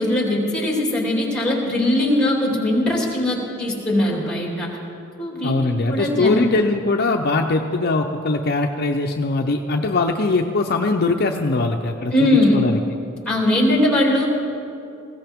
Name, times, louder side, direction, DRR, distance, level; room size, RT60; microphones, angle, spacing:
voice 1, 0.0-4.7 5.2-5.5 5.9-6.5 12.1-12.6 13.3-14.3, left 1 dB, 5° left, -2 dB, 2.8 m, -20 dB
voice 2, 5.4-12.8, left 3 dB, 50° left, 3 dB, 0.6 m, -21 dB
20.0 x 16.0 x 3.6 m, 2.8 s
head